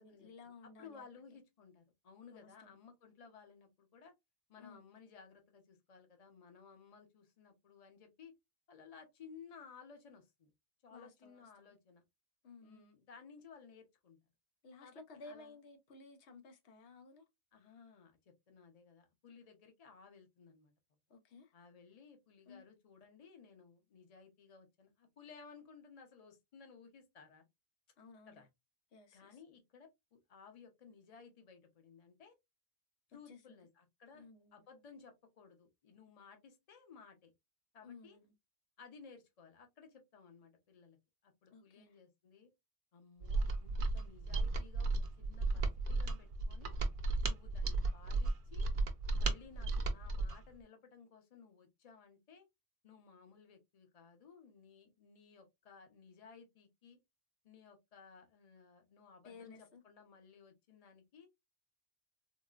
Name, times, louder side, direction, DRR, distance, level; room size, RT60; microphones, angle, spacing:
voice 1, 0.0-1.1 2.3-2.7 4.6-4.8 10.9-11.7 12.4-12.9 14.6-17.2 21.1-21.5 22.5-22.6 28.0-28.5 28.9-29.4 33.3-33.6 34.1-34.6 37.8-38.3 41.5-42.0 59.2-59.8, left 3 dB, 90° left, 1.0 m, -56 dB
voice 2, 0.6-4.1 4.5-8.3 8.7-10.5 10.8-12.0 12.6-14.2 14.8-15.6 17.5-20.7 21.5-27.5 28.3-28.5 29.1-32.3 33.1-34.3 34.5-37.3 37.7-38.2 38.8-41.0 41.2-42.5 42.9-46.8 47.2-48.7 49.1-52.5 52.8-57.0 57.4-61.3, left 6 dB, 40° left, 0.7 m, -58 dB
Mechanisms, 43.2-50.4, right 3 dB, 60° right, 0.7 m, -34 dB
3.8 x 2.1 x 2.3 m
omnidirectional pair, 1.1 m